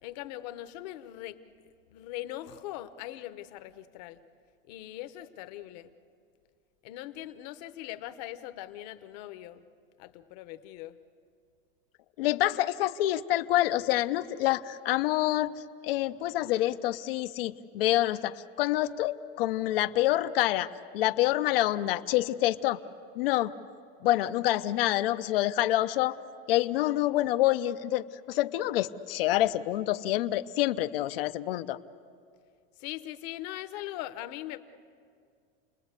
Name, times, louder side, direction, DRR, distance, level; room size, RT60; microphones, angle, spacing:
voice 1, 0.0-4.2 4.7-5.9 6.8-9.7 10.0-11.0 32.8-34.6, left 14 dB, 45° left, 11 dB, 1.0 m, -41 dB
voice 2, 12.2-15.5 15.8-20.7 20.9-22.8 23.2-23.5 24.0-26.2 26.5-31.8, left 15 dB, 75° left, 10 dB, 0.8 m, -27 dB
30.0 x 20.5 x 8.2 m, 2.3 s
supercardioid pair, 180°, 29 cm